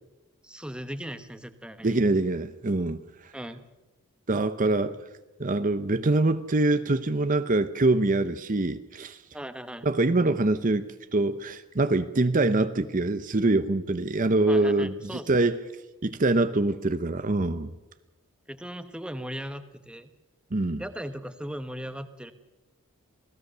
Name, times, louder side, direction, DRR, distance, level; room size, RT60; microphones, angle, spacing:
voice 1, 0.4-2.0 3.3-3.6 9.3-9.9 14.5-15.3 18.5-20.1 20.8-22.3, equal, 5° right, 9 dB, 1.0 m, -38 dB
voice 2, 1.8-3.0 4.3-5.0 5.4-9.2 9.8-10.9 11.1-15.6 16.0-17.7 20.5-20.8, right 2 dB, 35° right, 11 dB, 0.8 m, -24 dB
27.5 x 17.5 x 6.8 m, 1.0 s
head